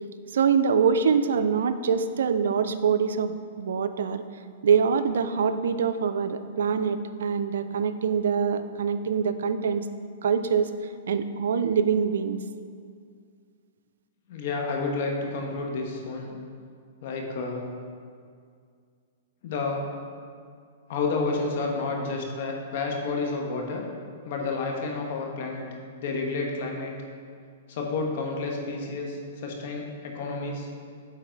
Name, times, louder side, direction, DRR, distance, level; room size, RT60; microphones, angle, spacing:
voice 1, 0.3-4.2 4.6-9.8 10.2-10.7 11.1-12.4, right 6 dB, 80° right, 11 dB, 0.4 m, -24 dB
voice 2, 14.3-16.3 17.0-17.6 19.4-19.8 20.9-23.9 24.2-25.7 26.0-27.0 27.7-30.7, left 3 dB, 60° left, 1 dB, 1.3 m, -30 dB
9.0 x 3.9 x 4.0 m, 2.2 s
hypercardioid pair, 135°, 0 cm